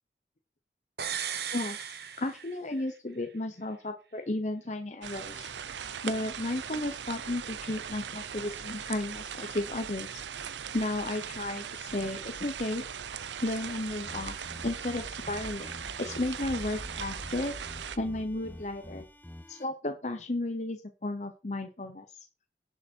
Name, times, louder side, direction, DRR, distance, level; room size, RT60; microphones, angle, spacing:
sound 1, 1.0-2.9 3.2-3.3, right 8 dB, 65° right, 1.3 m, -36 dB
voice 1, 1.5-5.5 6.0-10.2 10.7-12.8 13.4-14.4 14.6-17.6 18.0-19.1 19.5-22.0, left 2 dB, 40° left, 6 dB, 0.9 m, -34 dB
sound 2, 5.0-18.0, right 8 dB, 90° right, 0.7 m, -39 dB
sound 3, 13.9-19.6, equal, 10° left, 0.8 m, -45 dB
10.5 x 7.0 x 4.5 m, 0.34 s
head